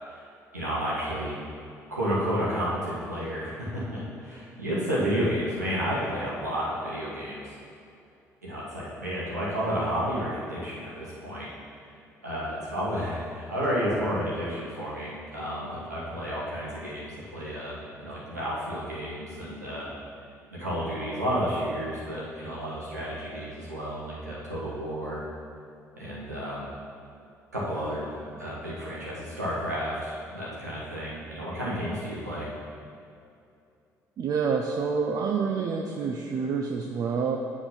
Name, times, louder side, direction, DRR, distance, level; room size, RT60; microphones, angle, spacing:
voice 1, 0.5-1.3 1.9-7.5 8.4-11.5 12.2-19.9 20.5-25.2 25.9-26.7 27.5-28.1 28.4-32.5, equal, 90° right, -7 dB, 1.3 m, -31 dB
voice 2, 34.2-37.4, right 5 dB, 45° right, 2 dB, 0.5 m, -27 dB
7.8 x 3.9 x 5.7 m, 2.5 s
figure-of-eight pair, 50°, 9 cm